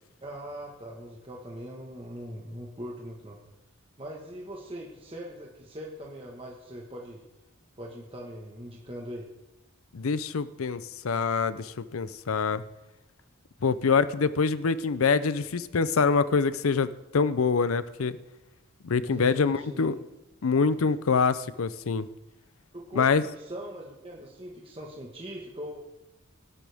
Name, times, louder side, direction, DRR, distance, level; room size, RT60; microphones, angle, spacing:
voice 1, 0.2-3.4 4.0-7.2 7.8-9.3 19.1-19.9 22.7-23.1 23.3-25.8, equal, 25° right, -2 dB, 1.4 m, -41 dB
voice 2, 9.9-12.6 13.6-18.2 18.8-20.0 20.4-22.1 23.0-23.2, left 5 dB, 90° left, 15 dB, 0.6 m, -25 dB
18.5 x 11.5 x 3.6 m, 0.99 s
head